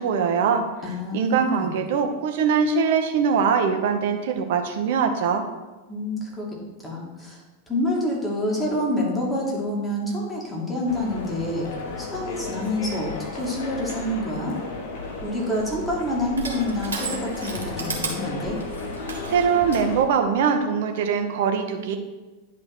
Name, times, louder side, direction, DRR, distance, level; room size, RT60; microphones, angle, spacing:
voice 1, 0.0-0.6 1.1-5.4 19.3-22.0, right 6 dB, 55° right, 5 dB, 1.0 m, -22 dB
voice 2, 0.8-1.7 5.9-6.6 6.8-7.4 7.7-11.7 12.0-14.5 15.2-18.6, left 1 dB, 10° left, -3 dB, 2.4 m, -27 dB
sound 1, 10.9-20.0, left 3 dB, 50° left, 1.3 m, -34 dB
Crushing, 15.0-19.9, right 4 dB, 70° right, 1.7 m, -35 dB
10.0 x 3.7 x 6.0 m, 1.2 s
figure-of-eight pair, 90°, 0 cm